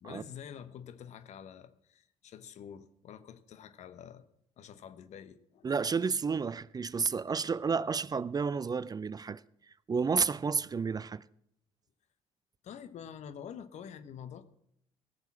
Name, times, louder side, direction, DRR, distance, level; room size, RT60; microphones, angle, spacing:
voice 1, 0.0-4.2 4.6-5.7 12.6-14.4, left 8 dB, 60° left, 1.1 m, -47 dB
voice 2, 5.6-9.4 9.9-11.2, right 5 dB, 30° right, 0.5 m, -31 dB
16.5 x 6.8 x 7.3 m
hypercardioid pair, 60°, 13 cm